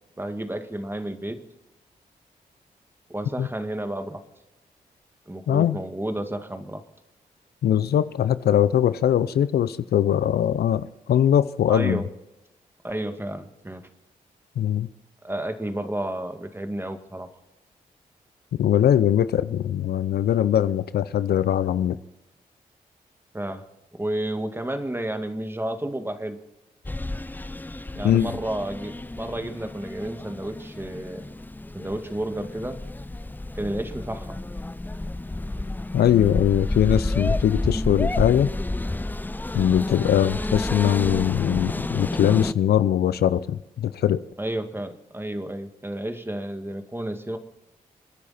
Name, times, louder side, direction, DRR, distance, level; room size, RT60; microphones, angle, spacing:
voice 1, 0.2-1.4 3.1-4.2 5.3-6.8 11.7-12.1 12.8-13.8 15.2-17.3 23.3-23.6 24.0-26.4 28.0-31.3 31.7-32.8 33.5-34.4 44.4-47.4, right 1 dB, 15° right, 2.0 m, -31 dB
voice 2, 5.5-5.8 7.6-12.0 14.6-14.9 18.6-22.0 28.0-28.3 35.9-38.5 39.5-44.2, left 10 dB, 75° left, 0.6 m, -21 dB
sound 1, 26.8-42.5, left 2 dB, 10° left, 0.5 m, -30 dB
29.5 x 10.0 x 4.3 m
supercardioid pair, 50°, 16 cm